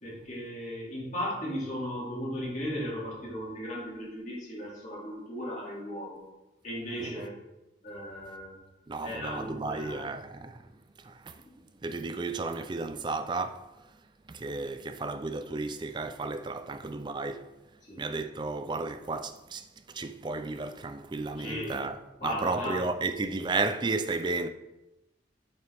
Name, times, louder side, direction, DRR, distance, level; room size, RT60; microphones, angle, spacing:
voice 1, 0.0-6.2 6.6-7.3 7.8-8.6 9.0-10.0 11.4-11.5 17.9-18.0 21.4-21.8 22.2-22.8, equal, 40° left, 2.4 m, -36 dB
voice 2, 8.9-10.6 11.0-11.4 11.8-13.7 14.3-17.5 18.0-24.5, right 3 dB, 25° right, 0.3 m, -33 dB
7.4 x 5.7 x 3.5 m
head